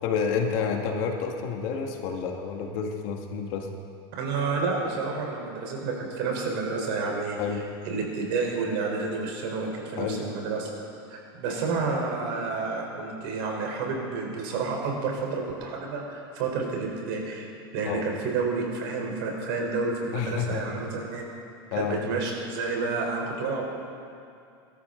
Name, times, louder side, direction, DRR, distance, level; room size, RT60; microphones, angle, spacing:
voice 1, 0.0-3.7 7.4-7.6 10.0-10.2 17.9-18.1 20.1-20.7 21.7-22.0, left 6 dB, 55° left, 2 dB, 1.9 m, -29 dB
voice 2, 4.2-7.4 7.9-10.7 11.1-17.5 17.7-21.2 21.7-23.8, right 4 dB, 65° right, 0 dB, 4.1 m, -30 dB
23.5 x 13.0 x 3.9 m, 2.5 s
supercardioid pair, 140°, 13 cm